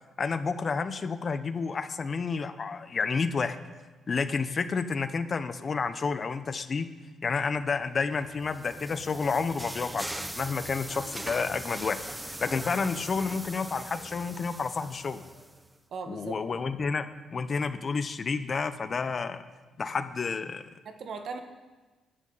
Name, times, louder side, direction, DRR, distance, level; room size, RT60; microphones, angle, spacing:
voice 1, 0.2-3.6 4.1-6.9 7.2-15.2 16.1-17.0 17.3-19.4 19.8-20.6, left 5 dB, 40° left, 11 dB, 0.9 m, -30 dB
sound 1, 8.1-15.7, right 1 dB, 10° right, 0.8 m, -41 dB
voice 2, 15.9-16.4 20.9-21.4, right 5 dB, 60° right, 6 dB, 1.6 m, -38 dB
20.0 x 11.0 x 4.2 m, 1.2 s
cardioid pair, 90°, 0 cm